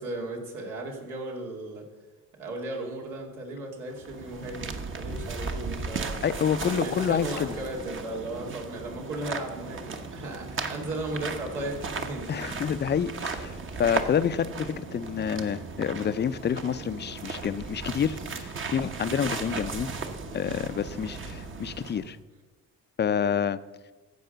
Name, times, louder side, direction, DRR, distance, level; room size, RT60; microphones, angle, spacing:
voice 1, 0.0-1.9 2.4-6.2 6.8-12.5, right 1 dB, 85° right, 0 dB, 2.6 m, -36 dB
sound 1, 3.9-22.2, right 4 dB, 40° right, 1.1 m, -36 dB
voice 2, 6.2-7.5 12.3-19.9 20.3-22.2 23.0-23.6, left 8 dB, 35° left, 14 dB, 0.5 m, -28 dB
14.5 x 4.9 x 6.7 m, 1.3 s
cardioid pair, 90°, 30 cm